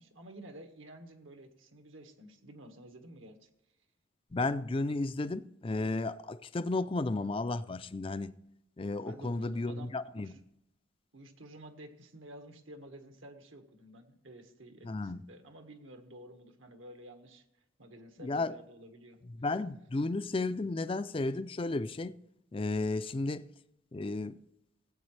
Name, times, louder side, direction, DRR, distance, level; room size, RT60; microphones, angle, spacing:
voice 1, 0.0-3.5 9.0-10.4 11.1-17.4 17.8-19.2, right 1 dB, 75° right, 1.7 m, -51 dB
voice 2, 4.3-8.3 8.8-10.3 14.8-15.2 18.2-18.6 19.2-22.2 22.5-23.5 23.9-24.4, left 2 dB, 25° left, 0.4 m, -33 dB
17.5 x 8.7 x 3.3 m
head